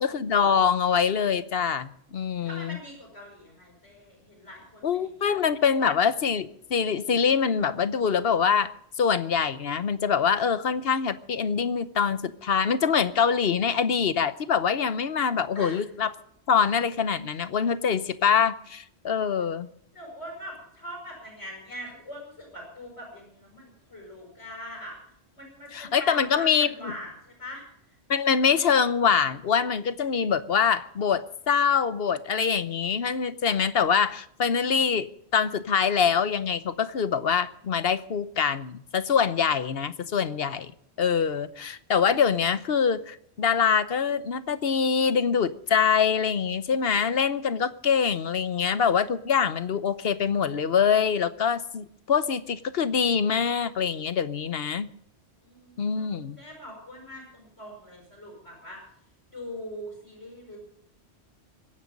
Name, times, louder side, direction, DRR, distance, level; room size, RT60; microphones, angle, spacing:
voice 1, 0.0-2.8 4.8-8.7 9.0-16.1 16.5-19.7 25.7-26.9 28.1-40.7 41.0-54.9 55.8-56.4, left 6 dB, 60° left, 1.1 m, -24 dB
voice 2, 2.4-5.4 15.5-15.8 19.9-24.9 25.3-27.6 55.4-58.8 59.3-60.6, equal, 80° left, 7.2 m, -42 dB
24.0 x 10.0 x 5.3 m
omnidirectional pair, 1.1 m